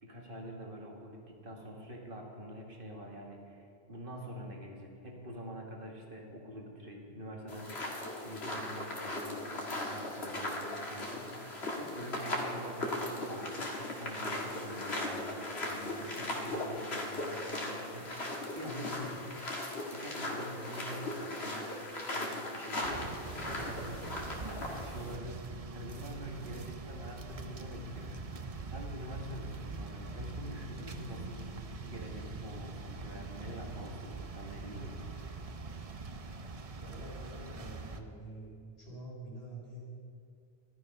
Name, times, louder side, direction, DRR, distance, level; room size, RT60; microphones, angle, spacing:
voice 1, 0.0-7.9 8.2-19.3 19.9-24.1 24.4-28.1 28.7-31.5 31.8-35.1, equal, 60° right, 0 dB, 2.0 m, -46 dB
sound 1, 7.5-25.2, left 1 dB, 85° left, 1.9 m, -38 dB
sound 2, 22.8-38.0, right 3 dB, 40° right, 0.7 m, -43 dB
voice 2, 36.7-38.5 38.8-40.0, right 1 dB, 70° left, -4 dB, 4.0 m, -47 dB
13.0 x 12.0 x 5.4 m, 2.4 s
omnidirectional pair, 1.1 m